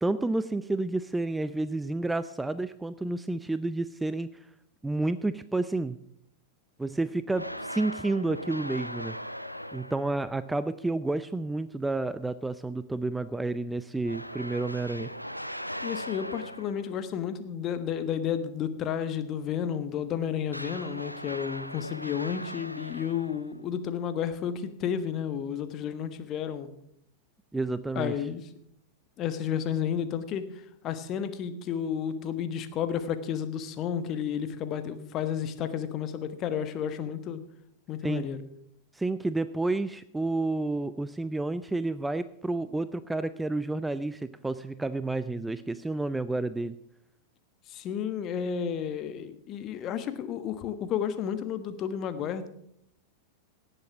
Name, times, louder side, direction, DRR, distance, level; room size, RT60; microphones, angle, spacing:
voice 1, 0.0-4.3 4.8-6.0 6.8-9.2 9.7-15.1 27.5-28.1 38.0-38.3 38.9-46.8, right 2 dB, 5° right, 14 dB, 0.4 m, -30 dB
sound 1, 7.3-10.3 14.0-16.9 20.5-23.6, equal, 90° left, 0.6 m, -39 dB
voice 2, 15.8-26.7 27.9-28.5 29.2-30.5 30.8-37.4 37.9-38.4 47.7-52.5, left 8 dB, 35° left, 11 dB, 1.2 m, -32 dB
17.5 x 7.9 x 6.1 m, 0.73 s
figure-of-eight pair, 90°, 0 cm